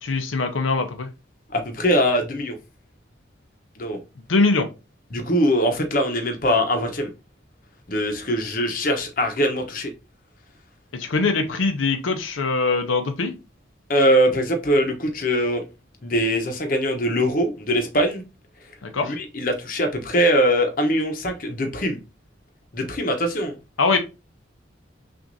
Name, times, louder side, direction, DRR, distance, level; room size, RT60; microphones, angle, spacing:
voice 1, 0.0-1.1 4.3-4.7 10.9-13.4 18.8-19.2 23.8-24.0, left 3 dB, 90° left, 0.6 m, -22 dB
voice 2, 1.5-2.6 3.8-4.0 5.1-7.1 7.9-9.9 13.9-15.6 16.0-18.2 19.0-22.0 22.7-23.6, equal, 45° left, 0.8 m, -22 dB
5.9 x 2.5 x 2.6 m
head